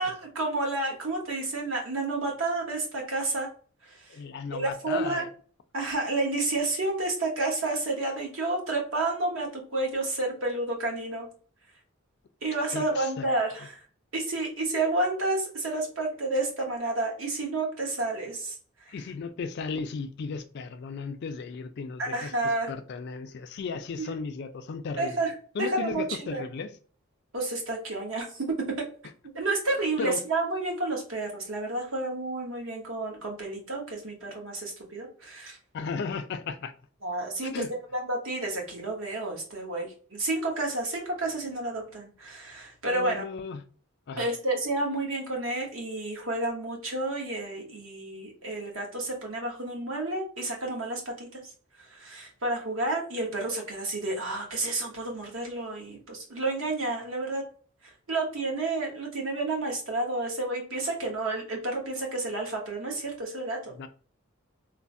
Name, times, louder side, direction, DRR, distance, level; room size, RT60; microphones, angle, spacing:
voice 1, 0.0-3.5 3.8-4.1 4.5-5.3 5.7-11.3 12.4-13.8 14.1-18.6 18.9-19.0 22.0-22.7 24.0-24.1 25.0-25.3 25.6-26.4 27.3-28.9 29.3-35.6 37.0-43.2 44.2-51.4 51.8-57.4 57.8-63.7, right 2 dB, 75° right, 1.1 m, -30 dB
voice 2, 4.1-5.3 12.7-13.3 18.9-25.2 25.5-26.7 30.0-30.2 35.7-36.7 37.4-37.7 42.9-43.6 44.1-44.3 63.7-63.9, left 5 dB, 55° left, 0.4 m, -35 dB
3.1 x 2.0 x 2.5 m
head